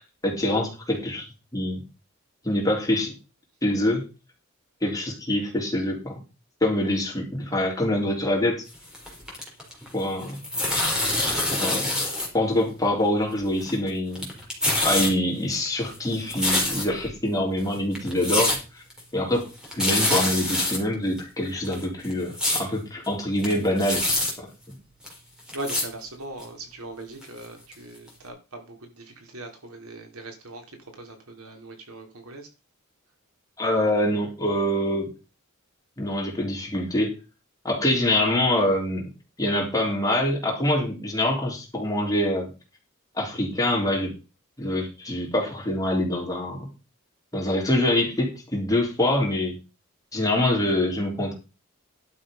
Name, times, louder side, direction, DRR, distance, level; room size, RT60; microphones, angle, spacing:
voice 1, 0.2-1.2 1.5-1.8 2.4-3.1 3.6-4.1 4.8-6.2 6.6-8.6 9.9-10.4 11.5-12.0 12.3-14.3 14.8-18.8 19.1-19.5 19.7-24.0 24.4-24.5 33.6-35.1 36.0-37.1 37.6-39.1 39.4-42.5 43.2-44.1 44.6-46.7 47.3-49.6 50.1-51.3, left 1 dB, 15° left, -1 dB, 3.8 m, -25 dB
sound 1, 8.7-9.9 10.2-12.3 12.6-12.7 13.4-13.9 14.1-15.1 15.5-17.1 17.6-17.7 17.9-18.6 18.9-19.0 19.4-19.5 19.6-20.8 21.2-21.3 21.6-22.6 23.0-23.1 23.4-24.3 25.0-25.1 25.5-25.8 26.4-26.5 27.2-27.3 27.7-27.8 28.1-28.2, left 1 dB, 5° right, 4.3 m, -25 dB
voice 2, 25.5-30.6 30.9-32.5, right 1 dB, 85° right, 5 dB, 3.2 m, -40 dB
11.5 x 6.6 x 5.5 m, 0.30 s
head